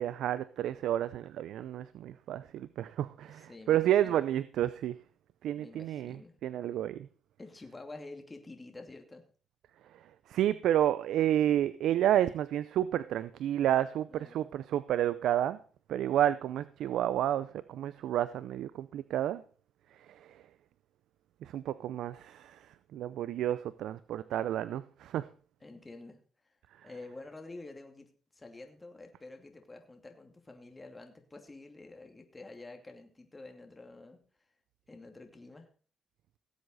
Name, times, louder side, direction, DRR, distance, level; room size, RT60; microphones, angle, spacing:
voice 1, 0.0-5.0 5.4-7.1 10.3-15.6 15.9-19.4 20.1-20.4 21.4-25.3, right 11 dB, 80° right, 15 dB, 0.5 m, -30 dB
voice 2, 3.3-4.2 5.6-6.3 7.4-9.2 14.1-14.5 25.6-26.2 26.8-28.1 28.3-34.2 34.9-35.7, left 2 dB, 25° left, 4 dB, 2.7 m, -49 dB
18.0 x 8.0 x 4.1 m, 0.41 s
cardioid pair, 75°, 0 cm